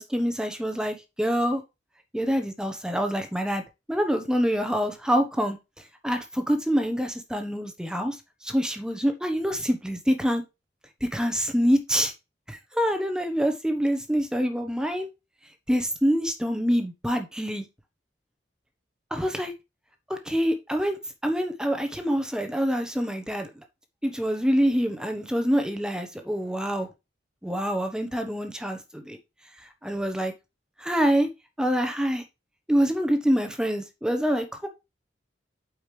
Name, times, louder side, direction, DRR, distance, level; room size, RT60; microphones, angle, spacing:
voice 1, 0.0-1.6 2.1-3.6 3.9-5.6 6.0-8.2 8.4-10.4 11.0-12.1 12.5-15.1 15.7-17.6 19.1-19.5 20.1-23.5 24.0-26.9 27.4-29.2 29.8-30.3 30.8-31.3 31.6-32.2 32.7-34.7, equal, 5° right, 1.1 m, -26 dB
8.7 x 5.1 x 3.2 m
head